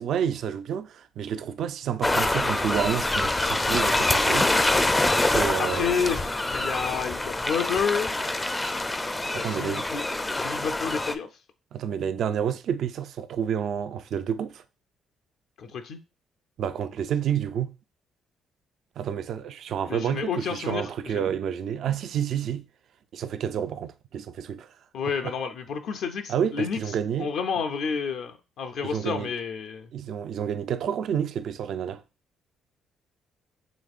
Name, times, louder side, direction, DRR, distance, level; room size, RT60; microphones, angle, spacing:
voice 1, 0.0-4.5 5.3-6.0 9.3-9.9 11.7-14.6 16.6-17.7 19.0-22.6 23.1-24.7 25.2-25.3 26.3-27.3 28.8-29.3 29.9-32.0, right 8 dB, 65° right, 0.4 m, -29 dB
sound 1, 2.0-11.1, left 2 dB, 15° left, 0.4 m, -25 dB
voice 2, 5.6-8.2 9.3-11.3 15.6-16.0 19.9-21.2 24.9-26.8 27.2-29.9, left 6 dB, 70° left, 0.5 m, -30 dB
5.1 x 3.5 x 2.4 m
cardioid pair, 80°, 0 cm